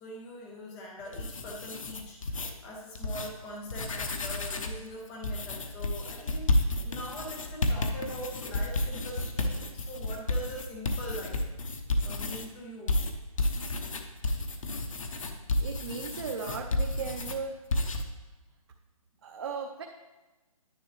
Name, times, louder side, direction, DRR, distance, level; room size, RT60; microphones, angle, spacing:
voice 1, 0.0-11.4 12.0-13.0, equal, 5° left, -1 dB, 0.3 m, -42 dB
sound 1, 1.0-2.5 2.9-3.3 3.6-4.8 5.2-12.5 12.9-17.4 17.7-18.0, left 2 dB, 60° left, 1.1 m, -31 dB
voice 2, 15.6-17.6 19.2-19.8, right 5 dB, 45° right, 2 dB, 0.7 m, -36 dB
10.0 x 8.3 x 3.1 m, 1.2 s
hypercardioid pair, 160°, 19 cm